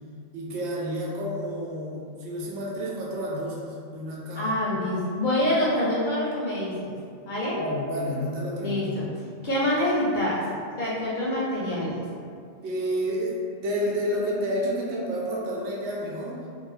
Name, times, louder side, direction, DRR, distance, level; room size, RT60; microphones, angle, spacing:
voice 1, 0.3-4.5 7.6-9.0 12.6-16.4, equal, 85° right, -4 dB, 0.9 m, -30 dB
voice 2, 4.4-6.9 7.3-7.6 8.6-9.1 9.4-10.4 10.8-12.0, left 1 dB, 55° left, -7 dB, 0.6 m, -26 dB
2.2 x 2.0 x 3.1 m, 2.3 s
omnidirectional pair, 1.1 m